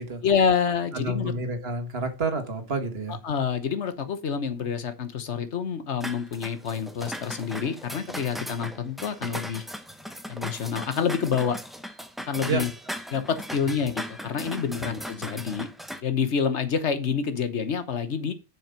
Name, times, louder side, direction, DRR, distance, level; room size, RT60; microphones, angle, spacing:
voice 1, 0.2-1.3 3.2-9.6 10.3-11.6 12.3-12.7 13.1-15.7 16.0-18.3, left 6 dB, 85° left, 1.4 m, -27 dB
voice 2, 0.9-3.2 12.5-12.7, right 3 dB, 60° right, 1.8 m, -29 dB
sound 1, 6.0-16.0, equal, ahead, 0.8 m, -38 dB
7.4 x 6.4 x 5.1 m
omnidirectional pair, 1.1 m